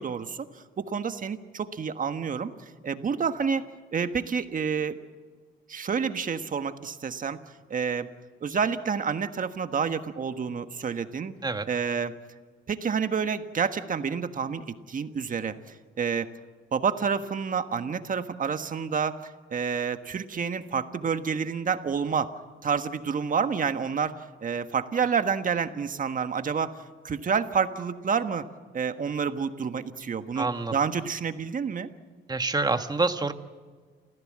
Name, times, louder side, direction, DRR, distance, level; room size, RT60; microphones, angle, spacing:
voice 1, 0.0-2.5 2.8-3.6 3.9-5.0 5.7-7.4 7.7-8.1 8.4-11.3 11.7-12.1 12.7-16.3 16.7-22.3 22.6-24.1 24.4-26.7 27.0-28.4 28.7-31.9, right 6 dB, 40° right, 9 dB, 1.4 m, -29 dB
voice 2, 30.4-30.7 32.3-33.3, right 3 dB, 20° right, 8 dB, 1.4 m, -26 dB
28.5 x 15.5 x 7.6 m, 1.5 s
cardioid pair, 90°, 20 cm